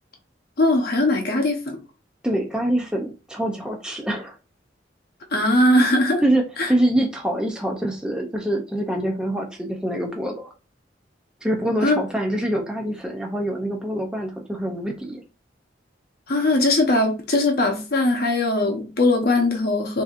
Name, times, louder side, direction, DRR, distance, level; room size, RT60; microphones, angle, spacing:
voice 1, 0.6-1.8 5.3-6.2 6.6-6.7 11.8-12.0 16.3-20.0, left 2 dB, 55° left, 0.9 m, -20 dB
voice 2, 2.2-4.4 6.2-10.5 11.4-15.2, right 1 dB, 5° right, 0.5 m, -25 dB
5.9 x 2.7 x 2.5 m
head